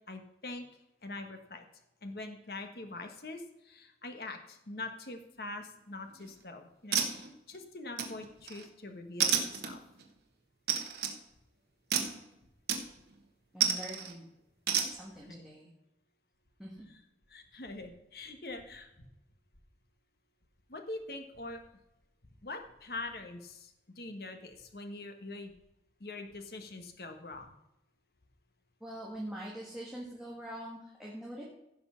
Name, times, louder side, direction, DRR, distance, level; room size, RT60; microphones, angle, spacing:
voice 1, 0.1-0.7 1.0-1.6 2.0-9.8 17.3-19.1 20.7-21.6 22.4-25.5 26.0-27.6, left 2 dB, 60° left, 6 dB, 1.3 m, -44 dB
sound 1, 6.1-6.4 6.9-7.6 8.0-8.6 9.2-10.0 10.7-11.2 11.9-12.2 12.7-13.1 13.6-14.1 14.7-14.9, right 8 dB, 65° right, 1.4 m, -31 dB
voice 2, 13.5-14.3 14.9-15.7 16.6-16.9 28.8-31.4, right 1 dB, 5° right, -4 dB, 1.7 m, -43 dB
15.5 x 5.5 x 5.8 m, 0.88 s
head